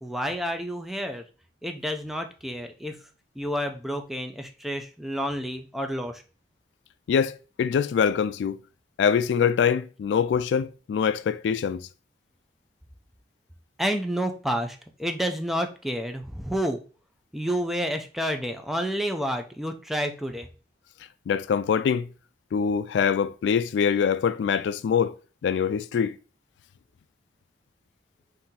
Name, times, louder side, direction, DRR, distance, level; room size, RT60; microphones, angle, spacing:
voice 1, 0.0-1.2 1.6-3.0 3.4-6.2 13.8-16.8 17.3-20.5, equal, ahead, 0.4 m, -29 dB
voice 2, 7.1-8.6 9.0-11.9 21.3-22.1 22.5-25.1 25.4-26.2, left 7 dB, 85° left, 0.3 m, -24 dB
4.1 x 2.7 x 3.7 m
head